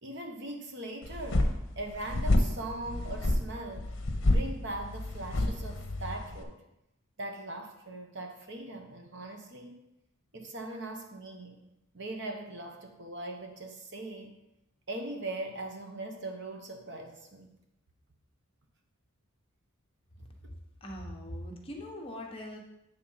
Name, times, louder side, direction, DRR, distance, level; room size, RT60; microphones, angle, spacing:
voice 1, 0.0-3.9 4.2-6.6 7.2-9.8 10.3-11.6 11.9-14.4 14.9-17.5 20.4-20.5, right 2 dB, 55° right, 3 dB, 1.0 m, -40 dB
sound 1, 1.0-6.4, left 1 dB, 60° left, 0.9 m, -29 dB
voice 2, 20.8-22.6, left 1 dB, 25° left, 0 dB, 1.0 m, -41 dB
8.7 x 3.6 x 5.5 m, 0.86 s
head